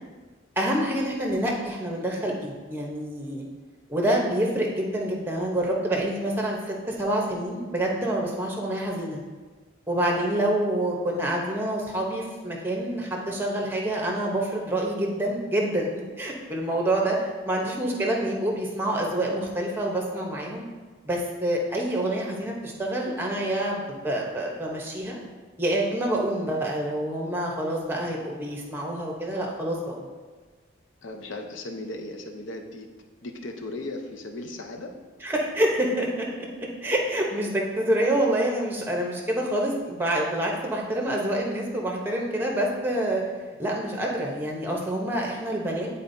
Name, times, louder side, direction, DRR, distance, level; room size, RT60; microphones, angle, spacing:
voice 1, 0.6-3.5 3.9-9.2 9.9-15.9 16.2-20.6 21.1-25.2 25.6-30.1 35.2-36.5 36.8-43.3 43.6-45.9, right 1 dB, 10° right, -1 dB, 0.9 m, -27 dB
voice 2, 31.0-32.9 33.2-34.9, left 2 dB, 70° left, 3 dB, 0.7 m, -36 dB
10.5 x 4.2 x 2.7 m, 1.4 s
head